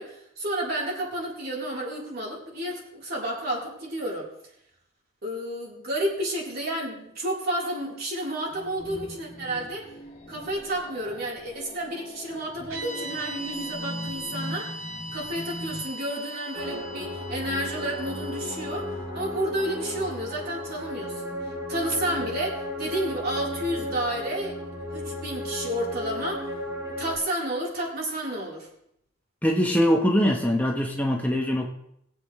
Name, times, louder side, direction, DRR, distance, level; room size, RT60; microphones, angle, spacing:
voice 1, 0.0-4.3 5.2-9.9 10.3-14.8 15.1-21.4 21.7-24.6 24.9-26.5 27.0-28.7, right 1 dB, 50° right, -3 dB, 3.9 m, -31 dB
sound 1, 8.5-15.8, equal, 30° left, 2.6 m, -40 dB
sound 2, 12.7-21.0, right 1 dB, 85° right, 3.6 m, -40 dB
sound 3, 16.5-27.2, left 1 dB, 15° right, 3.6 m, -34 dB
voice 2, 29.4-31.7, equal, 10° left, 0 dB, 1.0 m, -22 dB
21.5 x 8.1 x 3.2 m, 0.75 s
head